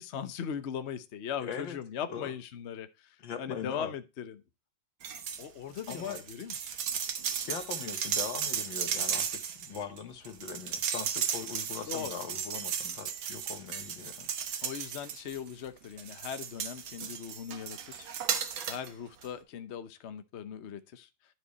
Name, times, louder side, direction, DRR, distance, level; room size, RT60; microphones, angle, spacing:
voice 1, 0.0-4.4 5.4-6.7 11.9-12.1 14.6-21.1, left 8 dB, 50° left, 0.8 m, -39 dB
voice 2, 1.4-1.8 2.1-2.3 3.2-3.9 5.9-6.2 7.4-14.7, left 7 dB, 75° left, 2.0 m, -41 dB
sound 1, 5.0-5.5 5.8-15.5 16.0-18.9 19.2-19.3, right 8 dB, 90° right, 1.9 m, -35 dB
11.5 x 5.0 x 4.1 m
omnidirectional pair, 2.1 m